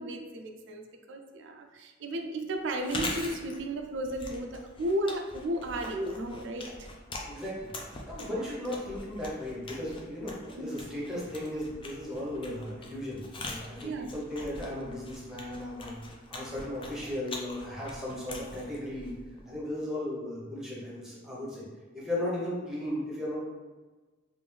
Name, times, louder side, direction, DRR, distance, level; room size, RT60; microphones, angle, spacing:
voice 1, 0.0-6.7 8.3-8.5 10.5-10.8 13.8-14.1, right 1 dB, 65° right, 4 dB, 0.4 m, -34 dB
Chewing mastication, 2.7-19.6, left 2 dB, 25° left, 0.4 m, -43 dB
voice 2, 7.3-16.0 16.3-19.1 19.4-21.6 21.9-23.4, left 1 dB, 5° right, -6 dB, 1.0 m, -36 dB
3.4 x 2.5 x 3.3 m, 1.3 s
head